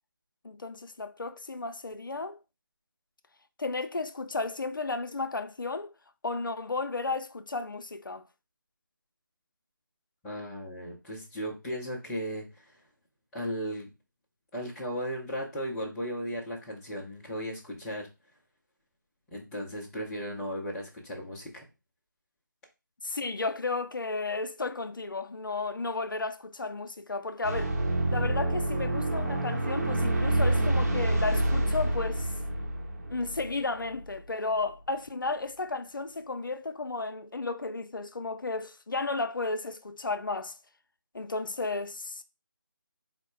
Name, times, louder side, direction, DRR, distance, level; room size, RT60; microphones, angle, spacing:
voice 1, 0.4-2.4 3.6-5.9 6.2-8.3 23.0-27.8 28.1-32.3 33.1-40.6 41.1-42.2, left 3 dB, 75° left, 0.5 m, -33 dB
voice 2, 10.2-12.8 13.3-13.9 14.5-18.1 19.3-21.7, equal, 5° left, 0.5 m, -36 dB
sound 1, 27.4-34.1, right 1 dB, 50° right, 0.9 m, -28 dB
4.2 x 2.1 x 4.4 m
figure-of-eight pair, 160°, 11 cm